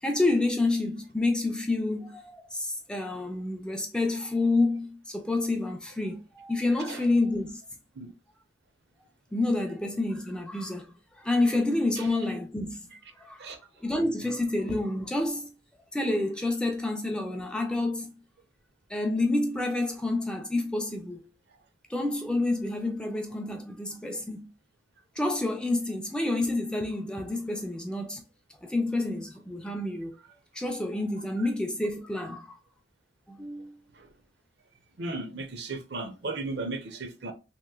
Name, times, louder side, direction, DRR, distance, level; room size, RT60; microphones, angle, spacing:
voice 1, 0.0-7.6 9.3-12.9 13.2-13.5 13.8-15.5 15.9-18.1 18.9-21.3 21.9-24.5 25.2-28.2 28.6-30.1 30.5-32.6 33.3-33.7, left 2 dB, 5° left, 0.3 m, -28 dB
voice 2, 35.0-37.3, right 3 dB, 65° right, 0.6 m, -36 dB
3.0 x 2.9 x 2.3 m
head